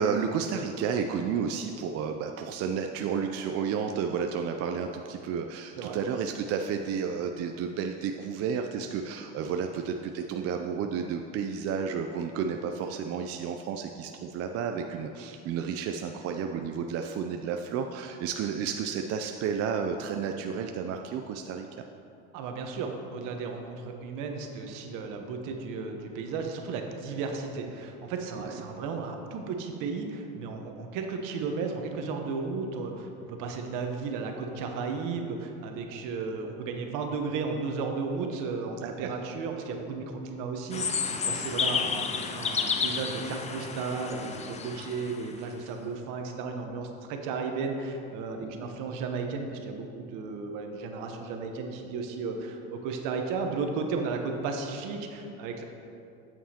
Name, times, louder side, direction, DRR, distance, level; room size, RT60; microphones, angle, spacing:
voice 1, 0.0-21.7 28.4-28.6 38.8-39.1 48.4-48.7, right 6 dB, 45° right, 4 dB, 0.5 m, -31 dB
voice 2, 22.3-55.6, right 4 dB, 70° right, 4 dB, 1.0 m, -34 dB
sound 1, 40.7-45.3, left 5 dB, 20° left, 0.5 m, -31 dB
8.6 x 7.2 x 2.9 m, 2.6 s
supercardioid pair, 100°, 34 cm